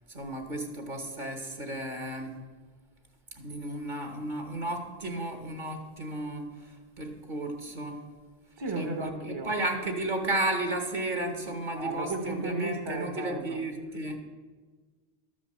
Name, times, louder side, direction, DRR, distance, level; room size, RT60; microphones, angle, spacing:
voice 1, 0.1-2.4 3.3-8.0 8.7-14.2, right 1 dB, 50° right, 4 dB, 1.4 m, -33 dB
voice 2, 8.6-9.6 11.7-13.6, right 2 dB, 30° right, 3 dB, 0.9 m, -34 dB
12.5 x 5.2 x 7.5 m, 1.4 s
omnidirectional pair, 1.0 m